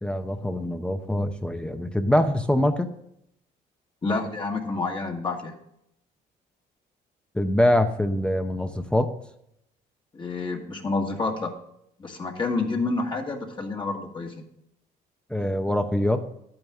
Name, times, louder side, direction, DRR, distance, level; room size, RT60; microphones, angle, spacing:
voice 1, 0.0-2.9 7.3-9.1 15.3-16.2, left 1 dB, 5° left, 6 dB, 0.7 m, -24 dB
voice 2, 4.0-5.6 10.1-11.5 12.0-14.4, left 3 dB, 30° left, 1 dB, 1.6 m, -28 dB
10.5 x 8.8 x 3.6 m, 0.75 s
cardioid pair, 110°, 17 cm